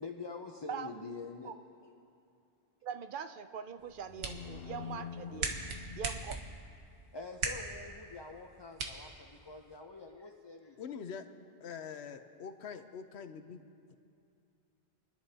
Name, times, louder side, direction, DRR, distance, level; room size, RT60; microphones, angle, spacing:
voice 1, 0.0-1.5 7.1-11.0, left 4 dB, 30° left, 2 dB, 0.6 m, -46 dB
voice 2, 2.8-5.5 6.0-6.4, right 7 dB, 60° right, 10 dB, 0.7 m, -42 dB
sound 1, 3.8-7.0, left 7 dB, 65° left, 0.8 m, -46 dB
sound 2, 3.8-9.8, right 3 dB, 85° right, 1.3 m, -42 dB
voice 3, 10.8-11.3 11.6-13.6, left 6 dB, 90° left, 9 dB, 1.0 m, -44 dB
28.0 x 10.5 x 2.8 m, 2.6 s
omnidirectional pair, 1.1 m